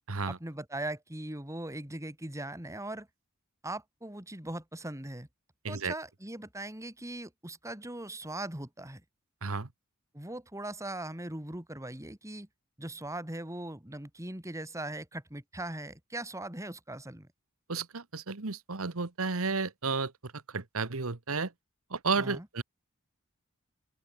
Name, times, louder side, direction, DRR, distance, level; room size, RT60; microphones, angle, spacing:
voice 1, 0.3-3.1 3.6-5.3 5.7-9.0 10.1-12.5 12.8-17.3 22.2-22.5, right 1 dB, 15° right, 2.6 m, -40 dB
voice 2, 17.7-21.5 21.9-22.6, right 4 dB, 70° right, 1.3 m, -32 dB
open air
head